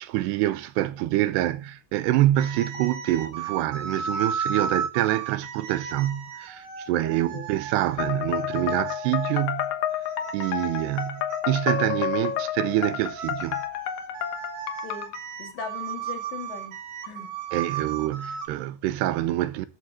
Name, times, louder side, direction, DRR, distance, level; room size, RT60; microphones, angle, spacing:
voice 1, 0.0-9.7 10.3-13.6 17.5-19.7, right 14 dB, 85° right, 2.9 m, -26 dB
sound 1, 2.4-11.9 12.7-18.5, right 7 dB, 60° right, 3.2 m, -35 dB
voice 2, 7.0-7.5 14.8-15.1 15.4-16.8 17.0-17.3, left 7 dB, 85° left, 4.5 m, -39 dB
sound 2, 8.0-15.2, left 10 dB, 65° left, 1.9 m, -30 dB
13.0 x 7.9 x 3.8 m
omnidirectional pair, 4.8 m